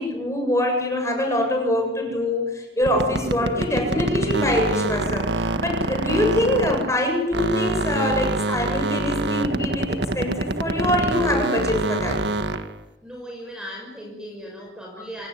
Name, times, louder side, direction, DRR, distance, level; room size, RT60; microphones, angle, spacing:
voice 1, 0.0-12.2, left 1 dB, 15° left, 2 dB, 7.6 m, -24 dB
sound 1, 2.8-7.0 7.3-12.7, right 2 dB, 80° right, 1.7 m, -25 dB
voice 2, 13.0-15.3, equal, 5° right, 0 dB, 5.9 m, -37 dB
27.0 x 18.5 x 9.9 m, 0.98 s
head